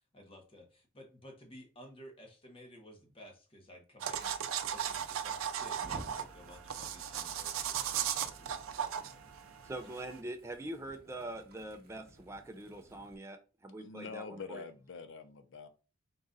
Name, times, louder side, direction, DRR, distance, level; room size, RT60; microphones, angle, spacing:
voice 1, 0.1-8.6 8.9-9.3 10.0-10.1, equal, 30° left, 1.0 m, -55 dB
sound 1, 4.0-10.2, right 9 dB, 85° right, 0.4 m, -37 dB
Fire, 4.2-13.1, right 2 dB, 50° right, 0.8 m, -56 dB
voice 2, 9.6-14.7, right 1 dB, 15° right, 0.4 m, -43 dB
voice 3, 13.8-15.7, left 5 dB, 65° left, 0.5 m, -45 dB
3.9 x 2.4 x 3.9 m
head